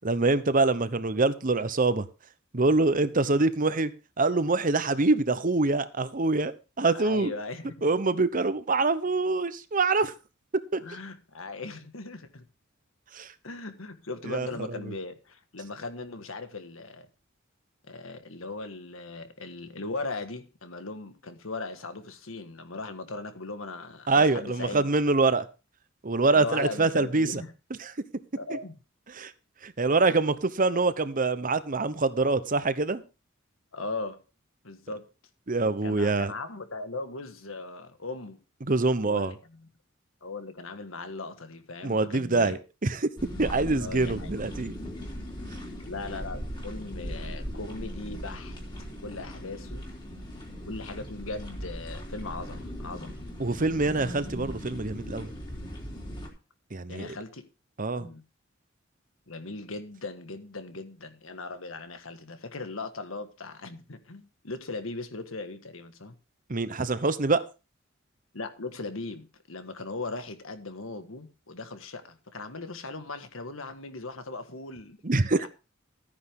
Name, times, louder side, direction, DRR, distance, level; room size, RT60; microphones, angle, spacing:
voice 1, 0.0-2.1 2.5-3.9 4.2-6.5 6.8-7.3 7.8-10.1 10.7-10.8 13.1-13.3 14.3-14.8 24.1-25.5 26.0-27.4 27.8-27.9 28.5-28.6 29.2-29.3 29.6-33.0 35.5-36.3 38.7-39.3 41.8-43.1 43.4-44.7 53.4-55.3 56.7-57.1 57.8-58.1 66.5-67.4 75.0-75.5, right 3 dB, 40° right, 0.9 m, -25 dB
voice 2, 6.9-7.9 10.8-12.5 13.4-17.1 17.9-24.9 26.3-27.5 28.3-28.8 33.7-34.2 34.6-35.1 35.8-38.4 39.0-39.7 40.2-42.6 43.7-44.3 45.9-48.6 49.0-49.9 50.7-53.2 56.9-57.5 57.9-58.2 59.3-66.1 68.3-75.5, left 3 dB, 85° left, 1.7 m, -38 dB
sound 1, 43.2-56.3, equal, 25° left, 3.5 m, -39 dB
13.5 x 9.9 x 3.6 m
head